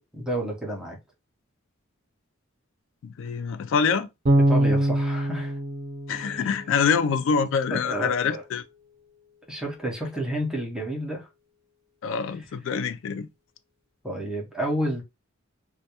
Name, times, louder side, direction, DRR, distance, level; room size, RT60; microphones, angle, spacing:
voice 1, 0.1-1.0 4.5-5.6 6.1-6.5 7.7-8.4 9.5-11.3 14.0-15.0, right 1 dB, 5° right, 0.5 m, -30 dB
voice 2, 3.0-4.1 6.1-8.6 12.0-13.3, left 6 dB, 65° left, 0.3 m, -25 dB
Bass guitar, 4.3-7.3, right 1 dB, 50° right, 0.7 m, -24 dB
2.2 x 2.2 x 2.8 m
head